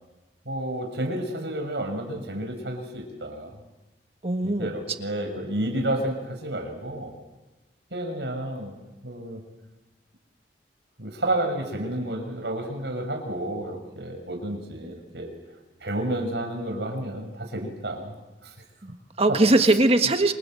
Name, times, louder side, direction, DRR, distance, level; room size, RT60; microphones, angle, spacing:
voice 1, 0.4-3.5 4.4-7.1 7.9-8.7 9.0-9.4 11.0-15.3 15.8-18.1 18.4-18.5 19.3-19.4, right 1 dB, 75° right, 4 dB, 6.3 m, -30 dB
voice 2, 4.2-4.7 18.8-20.3, right 2 dB, 35° right, 7 dB, 1.6 m, -21 dB
28.5 x 26.5 x 7.8 m, 1.1 s
head